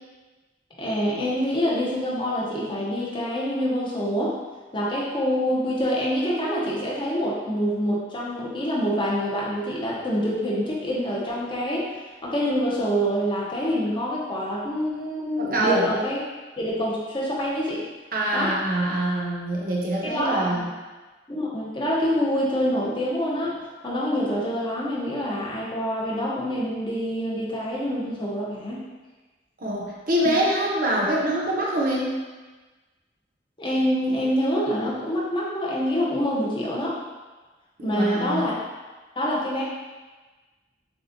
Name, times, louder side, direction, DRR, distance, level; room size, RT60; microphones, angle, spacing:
voice 1, 0.8-4.4 4.7-16.2 16.6-17.8 18.3-18.5 20.0-20.7 21.3-28.8 33.6-37.0 37.8-38.6 39.2-39.6, equal, 25° left, -6 dB, 0.9 m, -26 dB
voice 2, 15.4-15.9 18.1-20.7 29.6-32.2 37.8-38.5, right 1 dB, 50° right, -3 dB, 0.9 m, -24 dB
7.0 x 2.4 x 2.7 m, 1.3 s
head